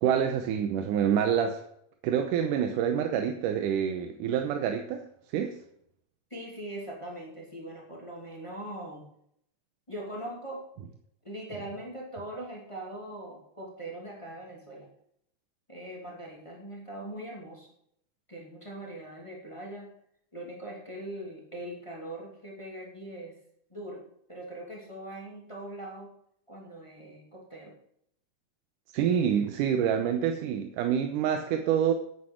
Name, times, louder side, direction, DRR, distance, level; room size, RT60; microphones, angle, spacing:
voice 1, 0.0-1.6 2.0-5.6 28.9-31.9, right 8 dB, 85° right, 6 dB, 2.4 m, -27 dB
voice 2, 6.3-9.1 9.9-10.7 11.2-14.9 15.7-17.7 18.3-19.9 20.3-23.4 23.7-26.1 26.5-27.8, right 1 dB, 10° left, -1 dB, 2.1 m, -41 dB
9.9 x 8.6 x 6.3 m, 0.71 s
omnidirectional pair, 3.7 m